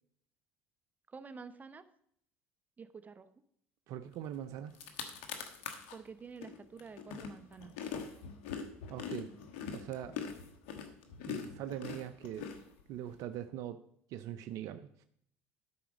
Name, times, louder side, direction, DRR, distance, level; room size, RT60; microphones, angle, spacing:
voice 1, 1.1-1.8 2.8-3.3 5.9-7.7, right 5 dB, 30° right, 12 dB, 0.9 m, -49 dB
voice 2, 3.9-4.8 8.9-9.3 9.7-10.2 11.3-12.5 12.9-13.8 14.1-15.0, right 11 dB, 65° right, 10 dB, 0.6 m, -42 dB
sound 1, 4.3-4.4 4.7-6.0 6.4-13.2, left 7 dB, 85° left, 1.3 m, -43 dB
12.5 x 4.8 x 6.2 m, 0.68 s
supercardioid pair, 80°, 6 cm